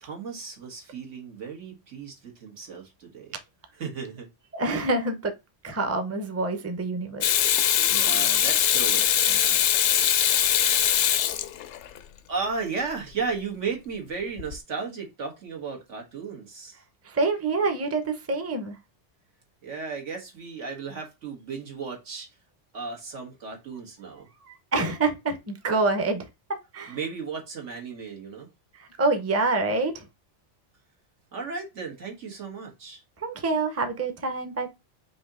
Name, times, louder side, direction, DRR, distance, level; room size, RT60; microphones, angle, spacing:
voice 1, 0.0-3.3 3.8-4.3 7.8-9.7 12.3-16.8 19.6-22.3 22.7-24.3 26.9-28.5 31.3-33.0, right 5 dB, 85° right, 1.8 m, -35 dB
voice 2, 4.5-5.3 5.6-7.3 17.0-18.8 24.5-26.3 26.7-27.0 28.7-30.1 33.2-34.7, right 3 dB, 15° right, 0.5 m, -26 dB
Water tap faucet / Sink (filling or washing), 7.2-12.0 14.4-14.5, left 10 dB, 75° left, 0.9 m, -22 dB
5.2 x 2.8 x 3.6 m
omnidirectional pair, 1.2 m